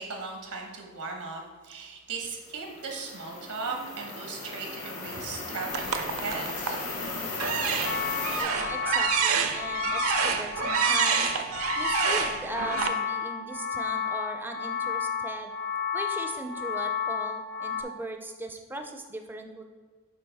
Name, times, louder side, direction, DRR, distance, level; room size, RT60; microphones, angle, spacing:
voice 1, 0.0-6.8, right 4 dB, 85° right, 2 dB, 1.0 m, -37 dB
sound 1, 2.5-8.4, left 3 dB, 65° left, 1.9 m, -36 dB
sound 2, 5.7-6.9 7.3-12.9, right 7 dB, 65° right, 0.5 m, -28 dB
sound 3, 7.8-17.8, left 7 dB, 50° left, 0.5 m, -32 dB
voice 2, 8.4-11.3 11.8-15.5 15.9-19.6, right 1 dB, 10° right, 5 dB, 0.4 m, -39 dB
7.5 x 4.7 x 3.4 m, 1.5 s
head